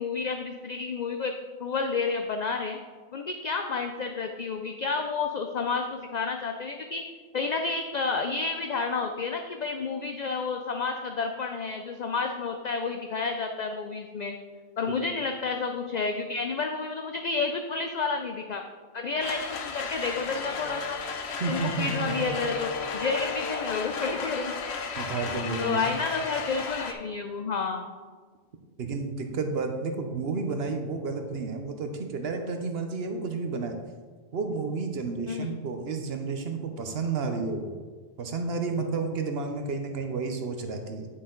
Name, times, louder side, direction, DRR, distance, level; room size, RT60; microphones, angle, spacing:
voice 1, 0.0-1.3 1.6-2.8 3.1-7.0 7.3-14.4 14.8-18.6 18.9-21.0 21.5-24.6 25.6-28.0 35.2-35.6, left 4 dB, 50° left, 5 dB, 0.6 m, -30 dB
sound 1, 19.2-26.9, left 5 dB, 85° left, 1.0 m, -34 dB
voice 2, 21.4-22.3 25.0-25.9 28.8-33.7 34.3-37.7 38.2-41.1, right 4 dB, 70° right, 5 dB, 1.0 m, -31 dB
9.6 x 6.3 x 3.8 m, 1.5 s
omnidirectional pair, 1.1 m